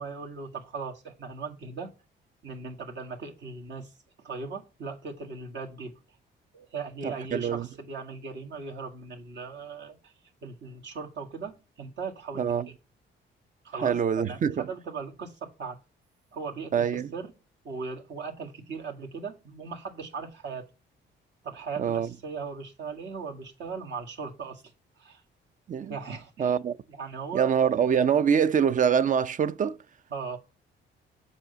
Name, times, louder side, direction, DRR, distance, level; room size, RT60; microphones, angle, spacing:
voice 1, 0.0-1.9 2.4-3.9 4.2-5.9 6.5-10.1 10.4-12.6 13.6-15.8 16.3-17.3 17.6-20.7 21.4-24.6 25.0-25.2 25.9-26.6 26.9-27.7 30.1-30.4, right 5 dB, 65° right, 1.9 m, -38 dB
voice 2, 7.0-7.7 12.4-12.7 13.8-14.7 16.7-17.1 21.8-22.1 25.7-26.0 26.4-26.8 27.3-29.8, right 7 dB, 40° right, 0.5 m, -25 dB
7.5 x 5.5 x 6.8 m
cardioid pair, 90°, 20 cm